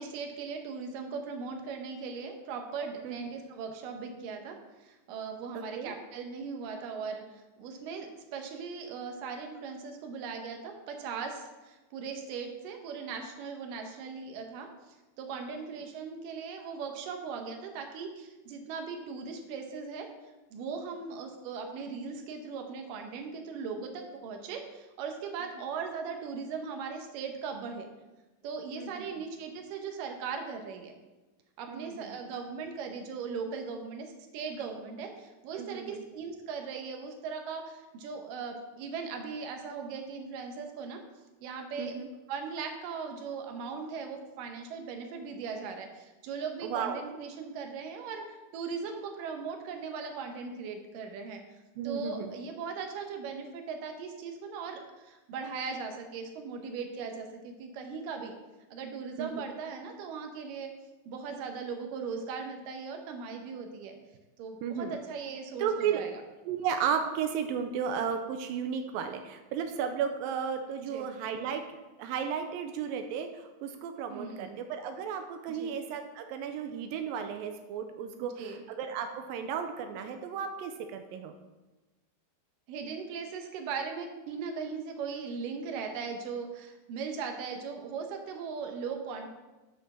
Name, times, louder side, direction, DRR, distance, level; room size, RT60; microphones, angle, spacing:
voice 1, 0.0-20.1 20.5-27.9 28.4-30.9 31.6-41.0 41.4-42.0 42.3-58.3 58.7-60.7 61.1-64.0 64.4-66.1 70.9-71.1 74.1-74.6 75.5-75.7 78.2-78.6 82.7-89.3, right 5 dB, 70° right, 4 dB, 2.3 m, -39 dB
voice 2, 5.5-5.9 28.8-29.1 31.7-32.1 35.6-36.0 41.8-42.1 46.6-47.0 51.8-52.3 59.2-59.4 64.6-65.0 65.6-66.1 66.5-71.6 72.0-78.3 78.7-81.3, right 7 dB, 90° right, 6 dB, 2.0 m, -34 dB
7.8 x 6.5 x 6.1 m, 1.1 s
omnidirectional pair, 4.7 m